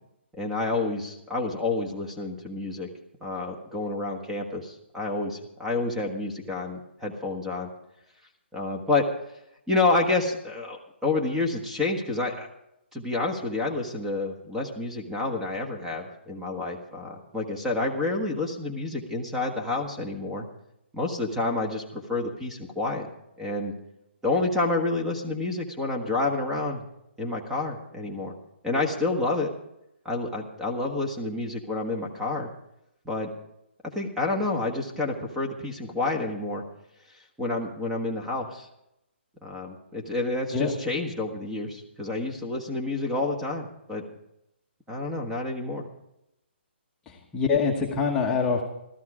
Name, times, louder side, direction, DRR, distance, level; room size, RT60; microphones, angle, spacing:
voice 1, 0.3-2.9 3.2-7.7 8.5-9.1 9.7-12.5 12.9-20.5 20.9-23.1 23.4-23.7 24.2-26.8 27.2-28.3 28.6-29.5 30.0-32.5 33.0-33.3 33.9-36.6 37.4-38.7 39.4-44.0 44.9-45.8, left 3 dB, 5° right, 2 dB, 1.4 m, -29 dB
voice 2, 47.1-48.7, left 5 dB, 10° left, -1 dB, 1.2 m, -25 dB
15.0 x 13.5 x 4.9 m, 0.83 s
hypercardioid pair, 160°, 6 cm